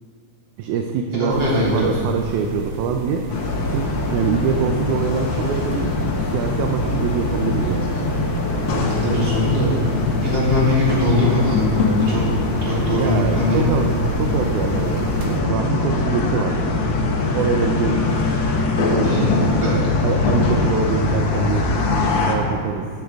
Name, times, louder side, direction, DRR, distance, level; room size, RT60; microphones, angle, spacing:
voice 1, 0.6-3.3 3.7-6.0 6.3-8.0 12.9-16.6 17.3-18.2 18.9-19.6 20.0-21.7 22.3-22.9, right 6 dB, 75° right, 3 dB, 2.0 m, -24 dB
voice 2, 1.2-1.8 8.7-12.2 12.6-13.6 19.0-19.3 19.6-19.7, left 1 dB, 35° right, -8 dB, 3.8 m, -21 dB
sound 1, 1.3-15.4, right 2 dB, 60° right, 1.5 m, -32 dB
sound 2, 3.3-22.3, left 3 dB, 90° left, 1.0 m, -22 dB
17.0 x 9.7 x 3.5 m, 2.1 s
omnidirectional pair, 3.8 m